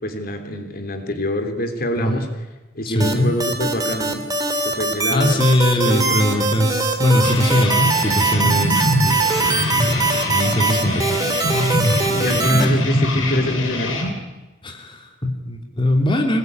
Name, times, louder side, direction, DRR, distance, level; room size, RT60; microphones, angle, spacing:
voice 1, 0.0-2.3 2.7-4.2 4.6-5.4 5.8-6.0 12.2-14.0, left 1 dB, 50° left, 6 dB, 3.4 m, -24 dB
voice 2, 2.8-3.3 5.1-11.7 14.6-16.4, left 1 dB, 25° left, 2 dB, 3.0 m, -21 dB
sound 1, 3.0-12.6, right 3 dB, 20° right, 3.1 m, -21 dB
sound 2, 7.2-14.1, left 1 dB, 90° left, 6.6 m, -23 dB
26.0 x 21.0 x 9.5 m, 1.1 s
head